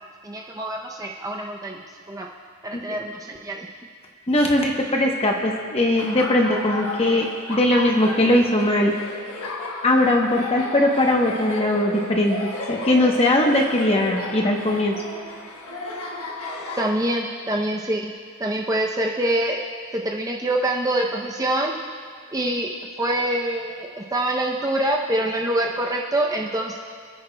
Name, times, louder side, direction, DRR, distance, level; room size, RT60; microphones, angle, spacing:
voice 1, 0.2-2.3 2.6-3.7 16.8-18.1 18.4-19.6 19.9-21.7 22.3-22.7 23.0-26.8, right 1 dB, 15° right, 0 dB, 0.5 m, -25 dB
voice 2, 4.3-8.9 9.8-12.4 12.7-14.9, left 1 dB, 25° left, 1 dB, 0.9 m, -20 dB
Laughter, 6.0-16.9, left 2 dB, 80° left, 1.3 m, -34 dB
28.0 x 10.0 x 2.2 m, 2.1 s
head